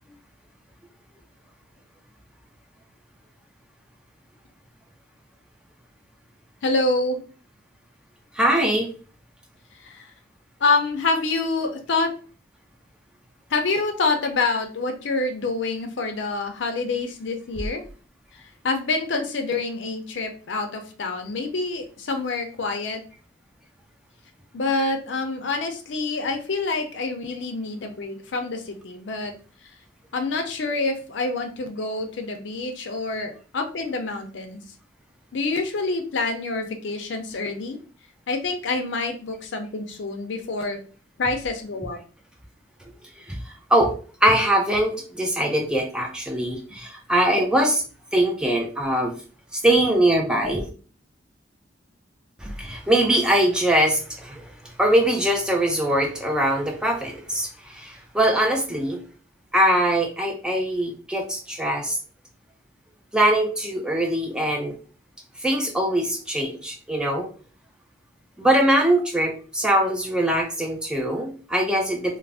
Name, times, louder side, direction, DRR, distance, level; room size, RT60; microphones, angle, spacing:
voice 1, 6.6-7.2 9.8-10.1 10.6-12.1 13.5-17.8 18.3-23.0 24.5-29.3 30.1-34.6 35.3-37.8 38.3-40.8 41.2-42.0, left 3 dB, 75° left, 5 dB, 0.5 m, -27 dB
voice 2, 8.4-8.9 43.3-43.4 43.7-43.9 44.2-47.8 48.1-49.1 49.5-50.7 52.4-54.4 54.8-59.0 59.5-62.0 63.1-64.7 65.4-67.3 68.4-72.2, right 1 dB, 5° right, 1 dB, 0.3 m, -22 dB
2.4 x 2.0 x 3.3 m, 0.39 s
head